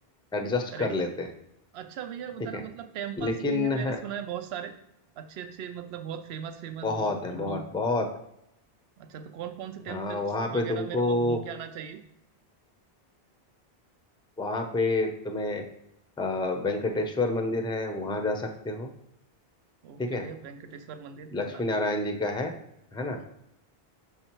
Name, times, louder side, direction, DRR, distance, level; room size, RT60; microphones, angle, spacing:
voice 1, 0.3-1.3 2.5-2.6 3.2-4.0 6.8-8.1 9.9-11.4 14.4-15.7 16.2-18.9 20.0-20.2 21.3-22.5 22.9-23.2, left 2 dB, 5° left, 5 dB, 0.5 m, -28 dB
voice 2, 1.7-4.7 5.2-7.7 9.0-12.0 19.8-21.9 23.2-23.3, right 8 dB, 80° right, 8 dB, 0.8 m, -39 dB
6.4 x 5.5 x 3.0 m, 0.81 s
omnidirectional pair, 1.0 m